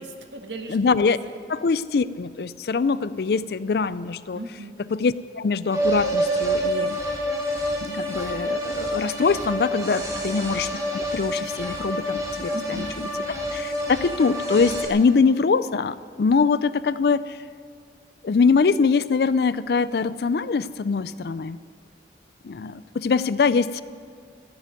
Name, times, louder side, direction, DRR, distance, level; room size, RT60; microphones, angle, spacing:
voice 1, 0.0-0.8 1.0-1.3 4.3-4.8 10.1-10.4 12.5-13.3, right 2 dB, 80° right, 4 dB, 1.5 m, -38 dB
voice 2, 0.7-1.2 1.5-4.4 4.9-7.0 7.8-12.9 13.5-17.4 18.2-21.6 22.4-23.8, left 4 dB, 60° left, 16 dB, 0.4 m, -23 dB
sound 1, 5.7-14.9, right 1 dB, 20° right, 1.4 m, -27 dB
15.0 x 7.5 x 9.3 m, 2.3 s
head